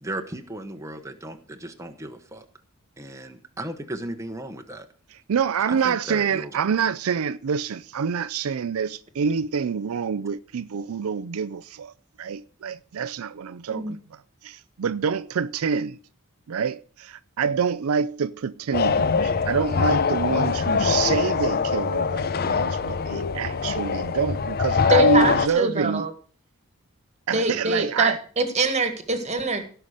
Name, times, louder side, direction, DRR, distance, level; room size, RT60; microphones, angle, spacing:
voice 1, 0.0-2.4 3.0-4.9 5.7-6.6, right 1 dB, 15° right, 1.0 m, -36 dB
voice 2, 5.3-11.9 12.2-14.0 14.4-16.0 16.5-26.1 27.3-28.2, right 6 dB, 80° right, 0.4 m, -26 dB
sound 1, 18.7-25.5, left 5 dB, 45° left, 0.6 m, -23 dB
voice 3, 24.9-26.1 27.3-29.6, right 2 dB, 30° right, 1.7 m, -24 dB
17.0 x 5.7 x 6.4 m
head